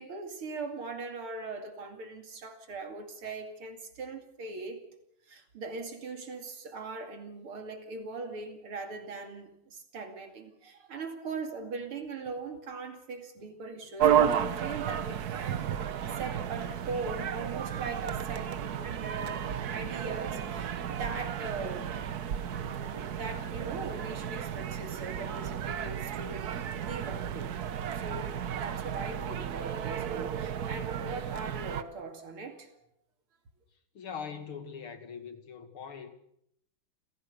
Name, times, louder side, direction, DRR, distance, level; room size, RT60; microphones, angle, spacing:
voice 1, 0.0-4.8 5.3-21.9 22.6-27.6 28.0-32.7, right 4 dB, 75° right, 3.4 m, -40 dB
sound 1, 14.0-31.8, right 9 dB, 55° right, 1.3 m, -33 dB
voice 2, 33.9-36.1, left 6 dB, 70° left, 3.0 m, -41 dB
28.5 x 16.0 x 6.7 m
omnidirectional pair, 2.4 m